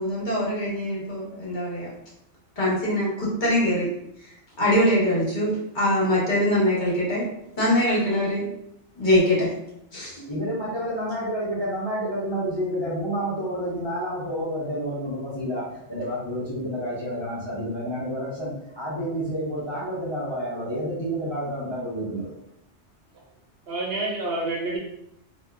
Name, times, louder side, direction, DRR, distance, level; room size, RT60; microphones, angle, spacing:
voice 1, 0.0-1.9 2.6-3.9 4.2-4.3 4.6-7.3 7.6-8.5 9.0-9.5 9.9-10.3, left 1 dB, 45° left, -6 dB, 0.9 m, -23 dB
voice 2, 10.3-22.3, equal, 30° left, -9 dB, 0.6 m, -29 dB
voice 3, 23.7-24.8, right 2 dB, 65° right, -2 dB, 0.8 m, -28 dB
2.7 x 2.2 x 2.3 m, 0.80 s
omnidirectional pair, 1.2 m